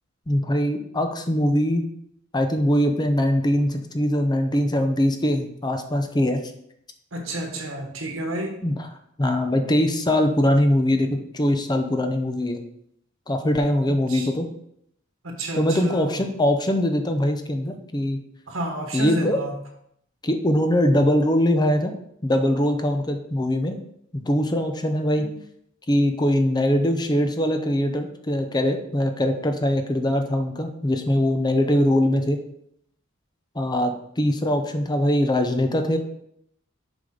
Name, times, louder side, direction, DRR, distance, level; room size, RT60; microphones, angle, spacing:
voice 1, 0.3-1.8 2.3-6.4 8.6-8.9 9.2-12.6 13.3-14.5 15.5-18.2 18.9-19.4 20.2-21.9 22.2-23.8 24.1-25.3 25.9-32.4 33.5-36.0, left 1 dB, 20° left, 6 dB, 0.7 m, -22 dB
voice 2, 7.1-8.6 14.1-14.3 15.2-16.2 18.5-19.5 25.2-25.3, right 1 dB, 85° right, 2 dB, 1.6 m, -31 dB
7.3 x 5.1 x 3.8 m, 0.72 s
head